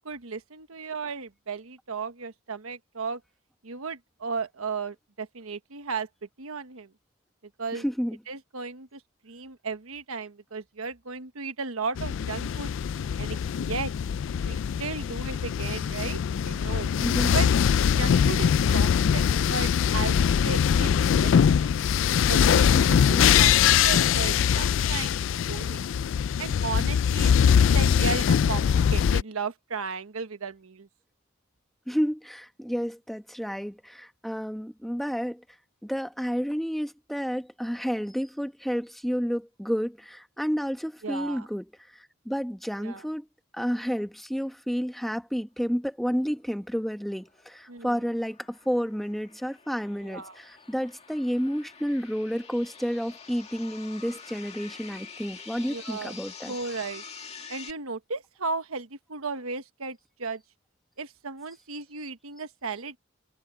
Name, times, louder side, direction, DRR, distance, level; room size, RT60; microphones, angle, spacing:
voice 1, 0.0-3.2 3.6-6.1 6.4-6.9 7.6-7.8 8.3-12.7 13.2-13.9 14.4-16.9 17.3-17.5 17.9-21.7 22.3-25.2 25.5-25.9 26.4-30.9 41.0-41.5 42.8-43.0 47.7-48.0 50.0-50.4 55.7-56.2 56.5-57.0 57.5-60.4 61.0-63.0, right 4 dB, 80° right, 1.2 m, -35 dB
voice 2, 7.7-8.2 17.0-17.4 23.1-23.2 31.9-35.4 35.8-41.6 41.9-43.3 43.5-56.5, equal, ahead, 1.1 m, -30 dB
sound 1, 12.0-29.2, left 8 dB, 60° left, 0.3 m, -22 dB
sound 2, 46.9-57.7, left 6 dB, 30° left, 2.1 m, -47 dB
head